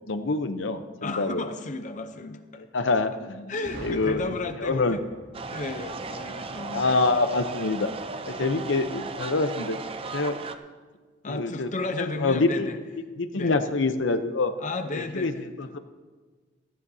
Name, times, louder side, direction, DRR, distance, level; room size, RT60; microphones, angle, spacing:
voice 1, 0.1-1.4 2.5-5.0 6.7-7.9 8.3-9.8 10.1-10.4 11.3-11.7 12.0-12.7 13.2-14.5 14.9-15.3 15.6-15.8, left 3 dB, 75° left, 9 dB, 0.7 m, -26 dB
voice 2, 1.0-2.6 3.5-5.0 5.5-6.9 11.2-12.8 13.3-13.6 14.6-15.4, left 3 dB, 40° left, 7 dB, 0.6 m, -33 dB
Boom, 3.6-7.5, right 1 dB, 70° right, 3.7 m, -44 dB
sound 1, 5.3-10.6, right 4 dB, 30° right, 0.5 m, -36 dB
17.0 x 14.0 x 2.7 m, 1.4 s
head